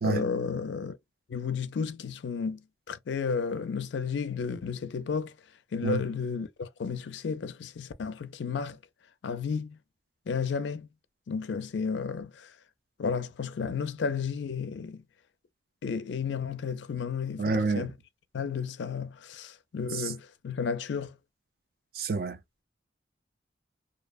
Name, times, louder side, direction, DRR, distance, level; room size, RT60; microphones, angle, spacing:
voice 1, 0.0-1.0 1.3-2.6 2.9-5.3 5.7-8.8 9.2-9.8 10.3-10.9 11.3-12.5 13.0-15.0 15.8-17.9 18.3-21.2, left 5 dB, 80° left, 0.4 m, -32 dB
voice 2, 17.4-17.9 19.9-20.1 21.9-22.4, right 4 dB, 55° right, 0.4 m, -28 dB
2.6 x 2.1 x 2.3 m
head